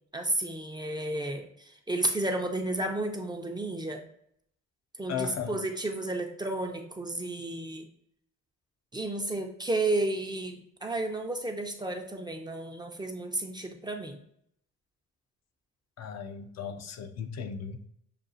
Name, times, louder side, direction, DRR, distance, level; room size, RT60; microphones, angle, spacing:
voice 1, 0.1-4.0 5.0-7.9 8.9-14.2, right 2 dB, 15° right, 0.5 m, -32 dB
voice 2, 5.1-5.6 16.0-17.8, left 7 dB, 60° left, 0.5 m, -36 dB
6.6 x 2.3 x 2.6 m
cardioid pair, 90°, 30 cm